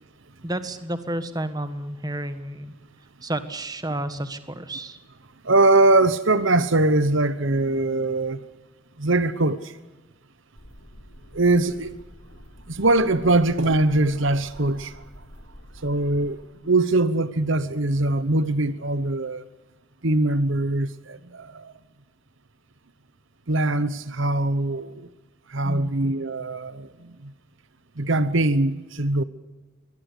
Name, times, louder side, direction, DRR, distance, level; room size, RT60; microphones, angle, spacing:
voice 1, 0.4-2.7 3.2-5.0 25.6-25.9, right 1 dB, 20° right, 1.4 m, -31 dB
voice 2, 5.4-8.4 9.0-9.8 11.3-11.9 12.7-15.0 15.8-19.4 20.0-21.7 23.5-25.1 25.5-27.3 28.0-29.2, right 2 dB, 60° right, 1.0 m, -22 dB
sound 1, 10.5-16.4, equal, 55° left, 4.6 m, -47 dB
24.0 x 18.5 x 8.3 m
head